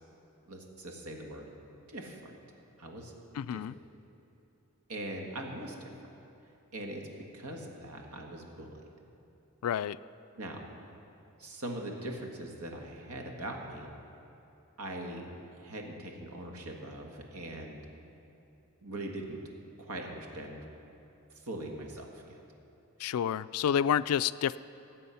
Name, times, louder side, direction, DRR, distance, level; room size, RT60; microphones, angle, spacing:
voice 1, 0.5-1.5 1.9-2.3 2.8-3.1 3.5-3.6 4.9-5.9 6.7-7.0 7.3-8.9 10.4-10.7 11.4-13.9 14.8-15.3 15.6-17.8 18.8-19.4 19.8-20.6 21.4-22.3, right 1 dB, 85° right, 2 dB, 1.6 m, -41 dB
voice 2, 3.4-3.7 9.6-10.0 23.0-24.6, left 8 dB, 75° left, 17 dB, 0.3 m, -29 dB
18.0 x 7.7 x 5.7 m, 2.9 s
head